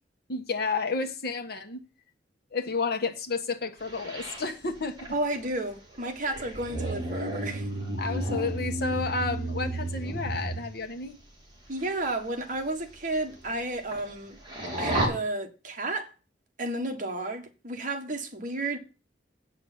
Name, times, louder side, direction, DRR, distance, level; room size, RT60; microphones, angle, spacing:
voice 1, 0.3-1.8 2.5-5.1 8.0-11.2, left 4 dB, 60° left, 1.4 m, -31 dB
sound 1, 3.9-10.7 11.8-12.1 12.5-12.6 13.1-13.2 13.4-14.1 14.4-15.1, right 1 dB, 25° right, 3.6 m, -32 dB
voice 2, 5.1-7.7 11.7-14.4 14.8-16.1 16.6-18.8, right 2 dB, 45° right, 1.5 m, -32 dB
8.4 x 6.6 x 7.3 m
head